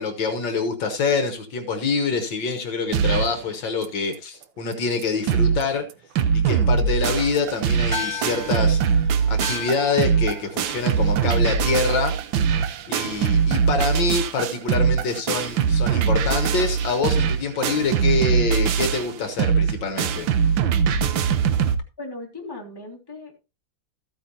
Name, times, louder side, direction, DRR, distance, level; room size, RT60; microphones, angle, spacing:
voice 1, 0.0-5.8 6.3-12.2 12.9-20.3, left 4 dB, 70° left, 7 dB, 1.7 m, -26 dB
sound 1, 2.9-3.4 3.8-3.9 4.1-4.2 4.7-4.8 5.0-5.6 5.9-21.8, right 6 dB, 80° right, 1.6 m, -22 dB
sound 2, 7.9-12.6, left 4 dB, 10° right, 1.8 m, -36 dB
voice 2, 22.0-23.4, left 2 dB, 10° left, 0 dB, 2.1 m, -37 dB
14.0 x 9.0 x 2.8 m, 0.30 s
omnidirectional pair, 2.2 m